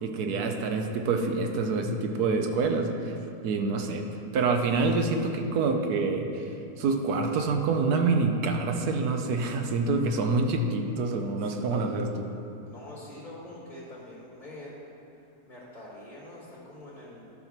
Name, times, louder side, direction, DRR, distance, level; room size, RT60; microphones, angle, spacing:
voice 1, 0.0-3.2 3.4-4.0 4.3-12.3, right 3 dB, 80° right, 4 dB, 1.3 m, -27 dB
voice 2, 11.4-12.2 12.6-14.7 15.5-17.3, left 1 dB, 30° left, -5 dB, 1.6 m, -45 dB
12.0 x 5.7 x 4.5 m, 2.7 s
omnidirectional pair, 1.7 m